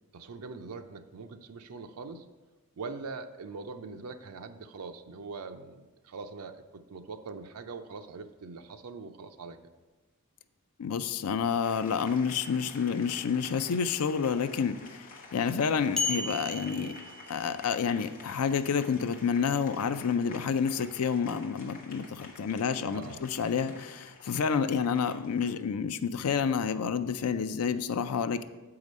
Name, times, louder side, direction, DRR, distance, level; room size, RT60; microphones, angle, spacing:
voice 1, 0.1-2.2 2.8-9.6 16.8-17.0 22.9-23.3, right 4 dB, 80° right, 8 dB, 0.5 m, -42 dB
voice 2, 10.8-15.1 15.3-16.9 17.3-28.4, left 6 dB, 75° left, 11 dB, 0.4 m, -29 dB
Applause, 11.6-25.6, left 3 dB, 40° left, 1.0 m, -50 dB
sound 1, 16.0-17.8, left 3 dB, ahead, 0.4 m, -34 dB
7.4 x 4.8 x 5.3 m, 1.2 s
head